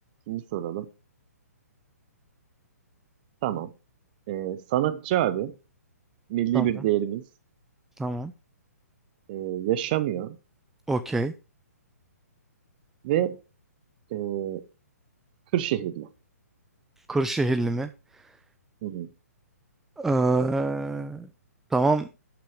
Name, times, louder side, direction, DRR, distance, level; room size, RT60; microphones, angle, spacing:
voice 1, 0.3-0.9 3.4-3.7 4.3-5.5 6.3-7.2 9.3-10.4 13.0-13.4 14.1-14.6 15.5-16.1 18.8-19.1, right 13 dB, 35° right, 12 dB, 0.7 m, -27 dB
voice 2, 8.0-8.3 10.9-11.3 17.1-17.9 20.0-21.3 21.7-22.1, right 2 dB, 5° right, 10 dB, 0.4 m, -25 dB
12.5 x 6.0 x 4.7 m, 0.30 s
figure-of-eight pair, 125°, 9 cm